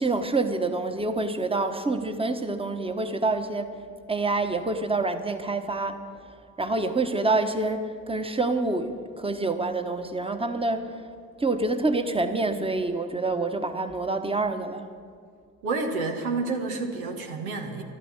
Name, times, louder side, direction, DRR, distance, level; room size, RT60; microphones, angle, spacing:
voice 1, 0.0-3.7 4.1-6.0 6.6-10.9 11.4-14.9, right 3 dB, 15° right, 7 dB, 1.2 m, -27 dB
voice 2, 15.6-17.8, right 3 dB, 85° right, 2 dB, 1.3 m, -29 dB
12.0 x 12.0 x 7.3 m, 2.2 s
hypercardioid pair, 40°, 43 cm